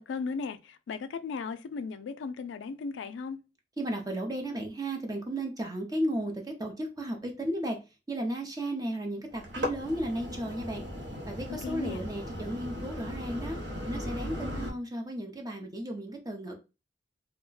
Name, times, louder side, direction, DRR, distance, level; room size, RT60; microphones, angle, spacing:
voice 1, 0.0-3.4 11.6-12.0, left 5 dB, 85° left, 0.3 m, -36 dB
voice 2, 3.8-7.8 8.1-10.8 11.3-13.6 13.9-16.5, right 1 dB, 20° right, 0.5 m, -34 dB
sound 1, 9.3-14.7, left 1 dB, 85° right, 0.9 m, -37 dB
2.3 x 2.1 x 3.8 m
head